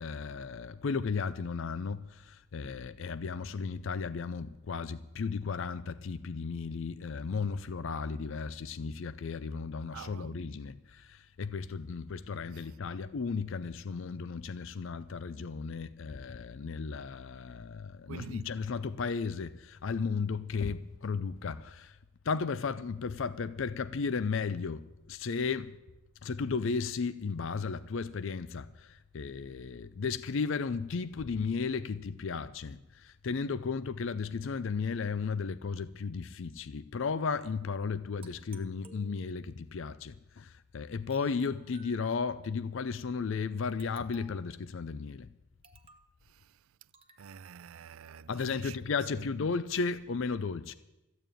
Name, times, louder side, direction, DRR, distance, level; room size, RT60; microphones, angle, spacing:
voice 1, 0.0-22.0 22.2-25.7 26.2-45.3 48.3-50.7, left 5 dB, 60° left, 0.4 m, -34 dB
voice 2, 9.9-10.4 12.5-12.7 18.1-18.5 46.2-46.6 47.2-48.8 49.1-49.3, right 7 dB, 75° right, 0.4 m, -48 dB
sound 1, 38.2-39.6 41.1-42.5 43.8-44.6 45.6-46.2 46.9-47.3, right 5 dB, 25° right, 0.9 m, -59 dB
14.0 x 9.0 x 9.0 m
head